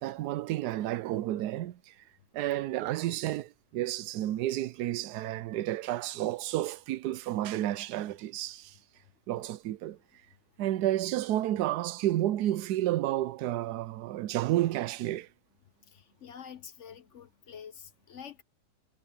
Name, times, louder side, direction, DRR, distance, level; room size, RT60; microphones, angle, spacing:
voice 1, 0.0-1.9 2.3-8.7 9.3-10.0 10.6-15.3, right 14 dB, 85° right, 1.2 m, -31 dB
voice 2, 15.9-18.4, left 7 dB, 55° left, 1.2 m, -47 dB
omnidirectional pair, 1.7 m